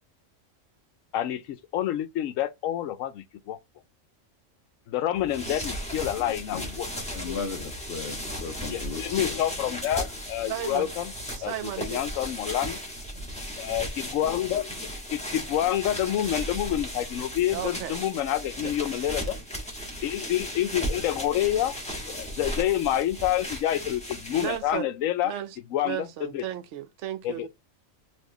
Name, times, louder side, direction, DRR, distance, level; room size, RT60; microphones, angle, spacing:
voice 1, 1.1-3.6 4.9-7.4 8.7-11.1 11.4-12.8 13.6-19.4 20.0-21.8 22.1-25.3 25.7-26.4 27.2-27.5, left 12 dB, 85° left, 1.0 m, -28 dB
sound 1, 5.1-24.7, equal, 5° left, 1.1 m, -36 dB
voice 2, 6.2-6.7 7.1-9.4, left 5 dB, 60° left, 0.8 m, -37 dB
voice 3, 10.5-10.9 11.4-12.0 17.5-18.0 18.6-19.1 24.4-24.9 25.2-25.5 25.8-27.5, right 12 dB, 70° right, 0.9 m, -34 dB
4.3 x 2.7 x 2.8 m
omnidirectional pair, 1.3 m